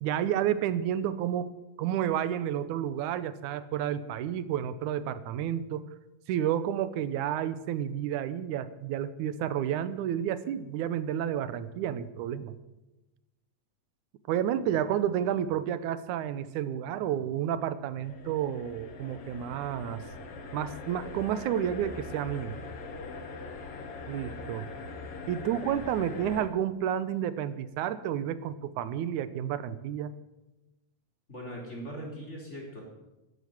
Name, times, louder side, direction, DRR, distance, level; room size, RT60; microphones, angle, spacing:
voice 1, 0.0-1.5 1.8-5.9 6.3-12.5 14.3-20.0 20.5-22.5 24.1-24.7 25.3-30.1, right 10 dB, 90° right, 14 dB, 2.3 m, -30 dB
sound 1, 18.0-26.5, left 3 dB, 55° left, 2.3 m, -42 dB
voice 2, 25.6-26.1 31.3-32.8, equal, 20° left, -2 dB, 3.8 m, -41 dB
13.0 x 9.8 x 9.2 m, 1.0 s
omnidirectional pair, 3.4 m